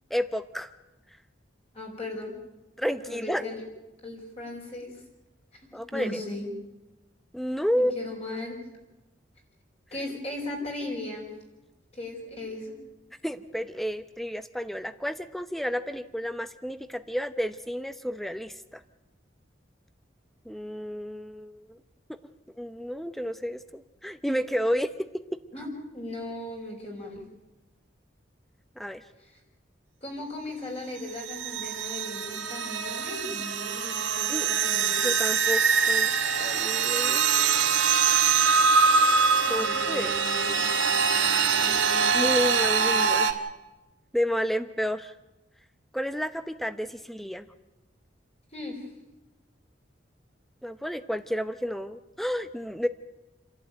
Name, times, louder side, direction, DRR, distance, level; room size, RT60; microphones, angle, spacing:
voice 1, 0.1-0.7 2.8-3.4 5.7-6.1 7.3-7.9 13.2-18.8 20.4-21.8 22.6-24.9 28.8-29.0 34.3-34.5 35.0-36.1 36.4-37.3 39.5-40.1 41.3-41.6 42.1-43.3 44.1-45.1 45.9-47.4 50.6-52.9, equal, ahead, 11 dB, 0.8 m, -31 dB
voice 2, 1.7-2.3 3.0-3.6 4.0-4.9 5.9-6.5 7.7-8.6 9.9-11.3 11.9-12.8 25.5-27.2 29.2-29.4 30.0-35.1 38.5-38.7 39.3-40.6 41.6-42.0 48.5-48.9, left 2 dB, 30° left, 0 dB, 5.2 m, -37 dB
sound 1, 31.3-43.3, right 5 dB, 80° right, 1.8 m, -24 dB
29.5 x 12.0 x 9.2 m, 1.0 s
head